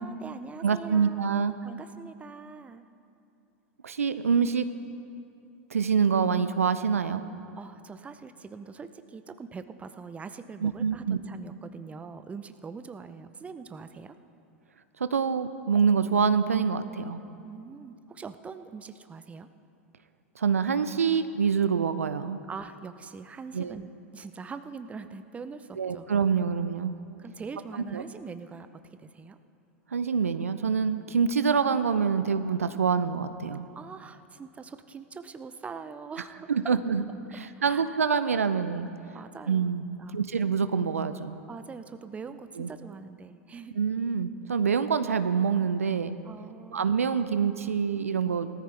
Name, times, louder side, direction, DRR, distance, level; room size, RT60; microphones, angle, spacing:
voice 1, 0.0-2.9 7.5-14.2 17.4-19.5 22.5-26.1 27.2-28.7 29.0-29.4 33.7-36.7 37.6-38.0 39.1-39.7 40.0-40.2 41.5-43.8 46.2-46.9, right 5 dB, 15° right, 11 dB, 0.7 m, -43 dB
voice 2, 0.6-1.5 3.8-4.7 5.7-7.2 10.6-11.2 15.0-17.2 20.4-22.4 23.5-23.8 25.8-27.0 27.7-28.0 29.9-33.7 36.5-37.0 37.3-38.9 39.5-39.8 40.1-41.4 42.6-42.7 43.7-46.2 46.7-48.5, right 6 dB, 85° right, 12 dB, 0.5 m, -26 dB
18.5 x 13.5 x 3.4 m, 2.7 s
figure-of-eight pair, 90°, 8 cm